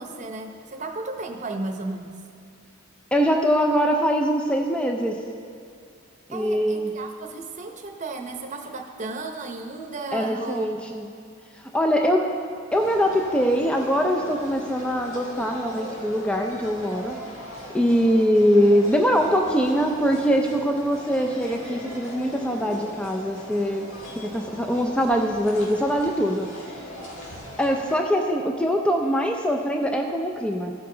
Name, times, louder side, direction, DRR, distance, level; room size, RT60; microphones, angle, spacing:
voice 1, 0.0-2.1 6.3-10.7, right 2 dB, 35° right, 3 dB, 0.8 m, -34 dB
voice 2, 3.1-5.2 6.3-6.9 10.1-11.1 11.7-12.2 12.7-17.2 17.7-23.9 24.2-26.5 27.6-30.7, equal, 5° left, 2 dB, 0.4 m, -22 dB
sound 1, 12.7-28.0, equal, 75° left, 1.8 m, -39 dB
15.0 x 5.7 x 3.8 m, 2.3 s
head